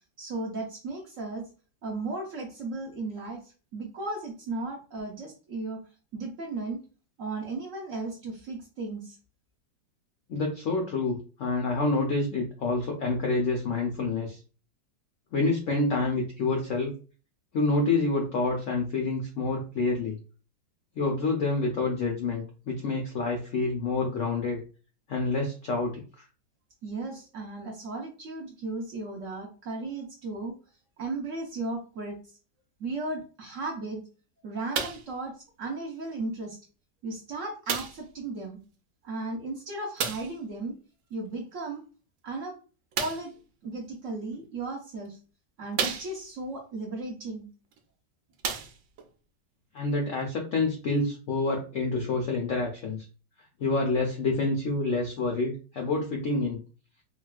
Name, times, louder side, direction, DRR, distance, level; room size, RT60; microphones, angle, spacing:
voice 1, 0.2-1.5 1.8-5.8 6.1-6.8 7.2-9.2 26.8-30.6 31.0-32.4 32.8-34.0 34.4-36.6 37.0-38.6 39.0-40.8 41.1-41.8 42.2-42.6 43.0-43.3 43.6-45.2 45.6-47.5, right 3 dB, 60° right, 0 dB, 0.9 m, -35 dB
voice 2, 10.3-14.4 15.3-16.9 17.5-20.2 21.0-24.6 25.1-26.2 49.7-53.1 53.6-56.6, left 3 dB, 75° left, 0 dB, 0.7 m, -28 dB
sound 1, 34.7-35.1 36.0-36.1 37.7-38.1 40.0-40.4 42.9-43.4 44.3-44.4 45.0-45.1 45.7-46.4 47.7-47.8 48.3-49.1 49.9-50.0, right 6 dB, 85° right, 1.3 m, -32 dB
4.0 x 2.3 x 2.2 m, 0.36 s
omnidirectional pair, 2.0 m